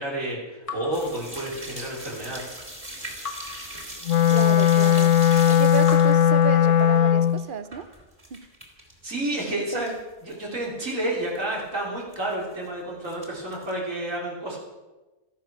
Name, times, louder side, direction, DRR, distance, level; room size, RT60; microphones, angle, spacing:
voice 1, 0.0-2.5 9.0-9.9 10.2-14.6, right 1 dB, 75° right, -3 dB, 3.9 m, -30 dB
Raindrop / Drip, 0.7-2.0 3.2-4.6 5.8-7.2, left 5 dB, 25° left, 1.5 m, -41 dB
sound 1, 0.9-8.9 9.2-10.0 10.3-10.4 10.8-10.9 11.1-11.4 12.1-12.7 13.0-13.7, right 1 dB, 25° right, 3.2 m, -40 dB
Wind instrument woodwind instrument, 4.0-7.4, left 9 dB, 70° left, 1.0 m, -18 dB
voice 2, 4.3-5.1 5.5-7.9 8.3-8.5 9.5-9.8, right 6 dB, 45° right, 13 dB, 0.9 m, -31 dB
17.0 x 13.5 x 6.1 m, 1.1 s
omnidirectional pair, 1.4 m